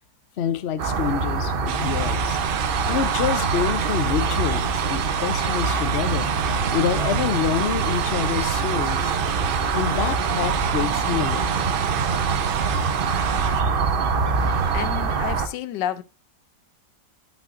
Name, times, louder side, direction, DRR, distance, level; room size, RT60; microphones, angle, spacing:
voice 1, 0.4-2.4 2.9-6.3 6.7-9.1 9.7-11.7, left 9 dB, 55° left, 0.8 m, -27 dB
sound 1, 0.8-15.5, right 5 dB, 55° right, 0.6 m, -24 dB
sound 2, 1.7-13.6, right 10 dB, 85° right, 1.3 m, -33 dB
voice 2, 14.7-16.0, left 11 dB, 85° left, 1.3 m, -30 dB
11.5 x 5.9 x 2.5 m
omnidirectional pair, 1.9 m